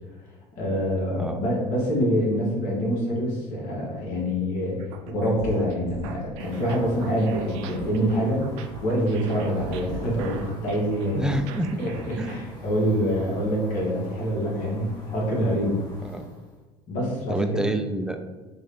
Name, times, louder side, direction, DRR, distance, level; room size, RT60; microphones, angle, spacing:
voice 1, 0.6-4.8 5.0-8.4 8.8-11.3 11.8-15.8 16.9-17.5, equal, 65° left, -4 dB, 1.3 m, -25 dB
sound 1, 4.8-12.4, right 4 dB, 80° right, 0.4 m, -38 dB
sound 2, 6.4-16.6, left 1 dB, 30° left, 1.0 m, -45 dB
voice 2, 11.1-11.8 12.2-12.4 16.0-16.3 17.3-18.3, right 1 dB, 5° right, 7 dB, 0.3 m, -28 dB
3.2 x 3.1 x 2.9 m, 1.3 s
supercardioid pair, 80°, 15 cm